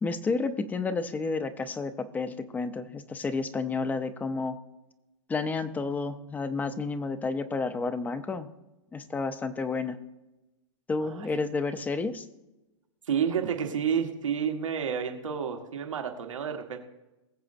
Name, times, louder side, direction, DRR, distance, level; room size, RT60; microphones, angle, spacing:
voice 1, 0.0-4.6 5.3-8.5 8.9-10.0 10.9-12.3, left 4 dB, 10° left, 11 dB, 0.5 m, -31 dB
voice 2, 13.1-16.8, right 7 dB, 85° right, 3 dB, 1.6 m, -30 dB
20.5 x 7.4 x 2.6 m, 1.0 s
hypercardioid pair, 135°, 16 cm